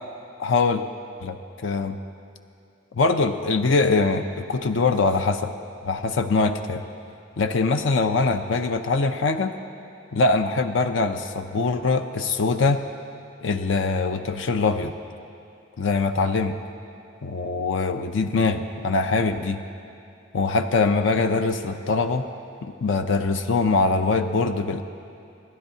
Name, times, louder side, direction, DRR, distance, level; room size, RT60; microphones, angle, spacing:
voice 1, 0.4-0.8 1.2-2.0 2.9-5.5 5.8-6.8 7.4-9.5 10.1-12.8 13.4-14.9 15.8-16.5 17.2-19.6 20.3-22.3 22.6-24.8, left 3 dB, 65° left, 8 dB, 0.5 m, -23 dB
27.0 x 11.5 x 2.8 m, 2.5 s
head